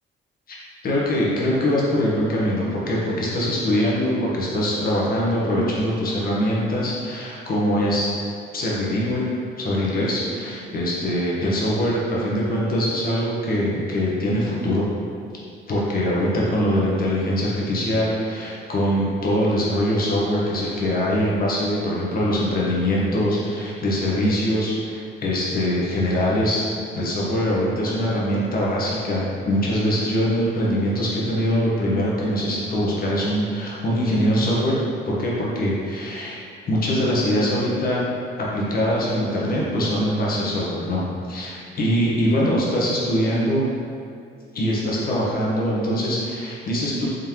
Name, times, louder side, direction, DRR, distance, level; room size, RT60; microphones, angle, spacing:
voice 1, 0.8-8.1 8.5-9.2 9.6-14.9 15.7-26.7 26.9-34.8 35.1-36.4 36.7-38.0 38.4-43.6 44.5-47.1, equal, 50° left, -5 dB, 1.0 m, -23 dB
3.7 x 3.2 x 2.9 m, 2.3 s
cardioid pair, 90°, 20 cm